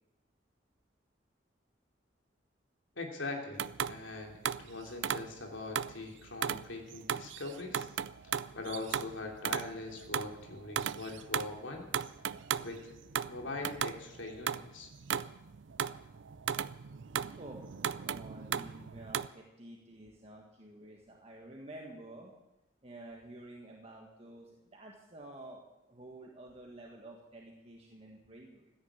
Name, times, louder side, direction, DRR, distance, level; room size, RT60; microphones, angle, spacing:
voice 1, 3.0-7.9 8.5-11.9 12.6-12.9 13.2-14.9, left 3 dB, 80° left, 2 dB, 3.1 m, -42 dB
sound 1, 3.6-6.0 6.4-19.3, right 8 dB, 75° right, 0.5 m, -37 dB
voice 2, 18.0-22.3 22.8-25.6 25.9-28.7, right 1 dB, 35° right, 0 dB, 1.7 m, -50 dB
15.5 x 10.0 x 8.8 m, 0.97 s
head